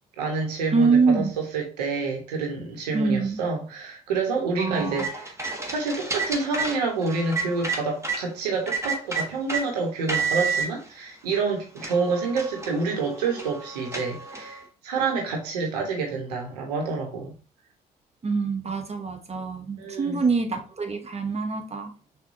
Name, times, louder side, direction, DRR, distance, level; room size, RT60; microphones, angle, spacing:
voice 1, 0.2-1.3 1.5-5.3 5.6-17.3 19.8-20.2, right 4 dB, 85° right, 1.3 m, -28 dB
voice 2, 0.7-1.3 2.9-3.4 4.6-5.1 18.2-21.9, right 4 dB, 30° right, 1.1 m, -24 dB
sound 1, 4.8-8.2 8.7-9.6 10.1-10.7 11.3-11.4 11.8-14.6, right 4 dB, 15° right, 1.3 m, -30 dB
6.4 x 2.6 x 2.7 m
hypercardioid pair, 50°, 20 cm